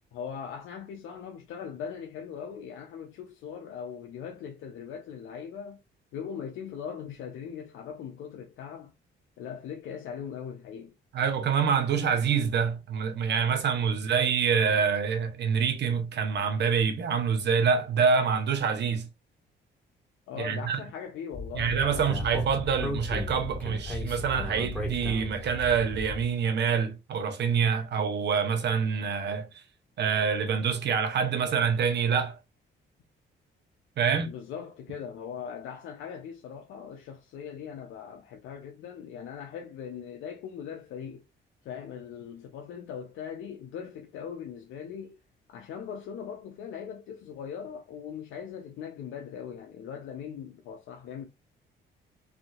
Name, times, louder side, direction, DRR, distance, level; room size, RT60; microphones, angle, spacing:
voice 1, 0.1-5.8 6.1-8.9 9.4-11.0 20.3-22.2 34.2-41.2 41.6-45.2 45.5-51.3, left 7 dB, 85° left, 0.6 m, -40 dB
voice 2, 11.1-19.1 20.4-20.8 21.5-29.5 30.0-32.4 34.0-34.3, right 6 dB, 60° right, 0.9 m, -26 dB
Speech, 21.3-26.3, left 1 dB, 10° left, 1.5 m, -35 dB
3.4 x 2.6 x 2.3 m
cardioid pair, 90°, 20 cm